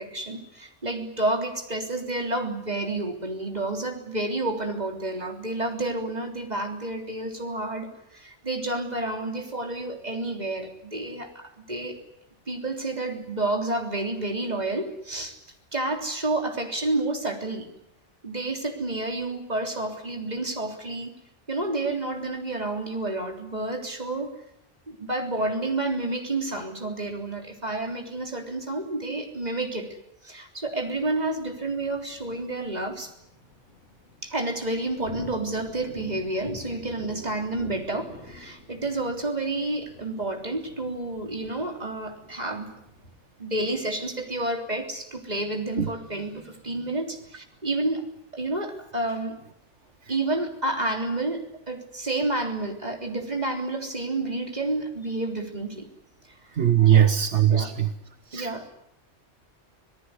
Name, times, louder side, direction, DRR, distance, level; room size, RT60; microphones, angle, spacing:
voice 1, 0.0-12.0 12.5-15.4 15.7-17.7 18.2-21.1 21.5-24.4 24.9-29.9 30.2-33.1 34.2-42.7 43.4-48.1 48.3-49.4 50.1-55.9 56.3-57.1 57.4-57.7 58.3-58.7, right 2 dB, 35° right, 4 dB, 3.6 m, -30 dB
sound 1, 30.6-43.1, left 2 dB, 85° left, 4.2 m, -46 dB
voice 2, 56.6-57.9 58.3-58.7, right 10 dB, 75° right, 9 dB, 1.5 m, -20 dB
26.0 x 18.5 x 9.7 m, 0.78 s
omnidirectional pair, 1.2 m